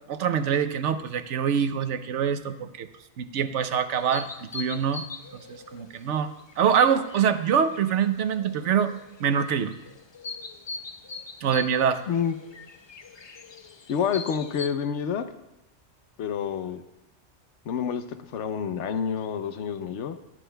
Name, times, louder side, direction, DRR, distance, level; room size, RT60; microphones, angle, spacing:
voice 1, 0.1-2.9 3.2-4.3 4.5-5.0 5.5-8.9 9.2-9.7 11.4-12.0, right 7 dB, 85° right, 10 dB, 1.0 m, -24 dB
sound 1, 3.9-14.7, left 4 dB, 40° left, 0.4 m, -42 dB
voice 2, 13.9-15.3 16.2-16.8 17.7-18.0 18.3-20.2, left 7 dB, 80° left, 9 dB, 1.0 m, -28 dB
20.5 x 11.0 x 2.2 m, 0.92 s
omnidirectional pair, 1.2 m